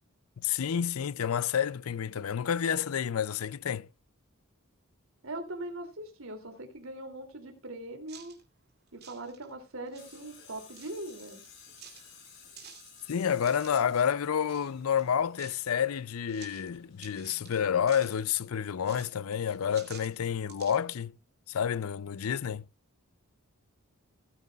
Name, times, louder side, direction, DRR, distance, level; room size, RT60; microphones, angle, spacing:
voice 1, 0.4-3.9 13.1-21.1 21.5-22.7, left 8 dB, 80° left, 0.5 m, -29 dB
voice 2, 5.2-8.4 8.9-11.4, right 1 dB, 75° right, 2.8 m, -41 dB
sound 1, 8.1-8.4 8.9-9.6 9.9-10.2 10.7-11.5 11.8-13.8 14.5-14.7 15.0-15.7 16.3-16.7 17.0-18.4 18.8-20.8, right 9 dB, 50° right, 2.5 m, -52 dB
Tools, 10.0-17.8, left 5 dB, 55° left, 4.3 m, -55 dB
17.5 x 9.5 x 2.4 m
head